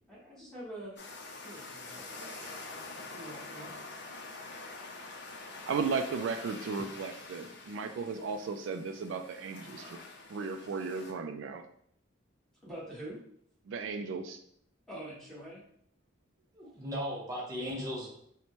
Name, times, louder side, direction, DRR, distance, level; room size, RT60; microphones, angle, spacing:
voice 1, 0.1-1.0 1.4-3.7 12.6-13.2 14.9-15.6, right 1 dB, ahead, -8 dB, 1.2 m, -46 dB
sound 1, 1.0-11.1, left 3 dB, 60° left, 0.6 m, -46 dB
voice 2, 5.6-10.0 10.3-11.6 13.7-14.4, right 5 dB, 70° right, 7 dB, 0.3 m, -35 dB
voice 3, 16.5-18.1, equal, 15° right, -6 dB, 0.7 m, -37 dB
4.2 x 2.2 x 3.0 m, 0.67 s
head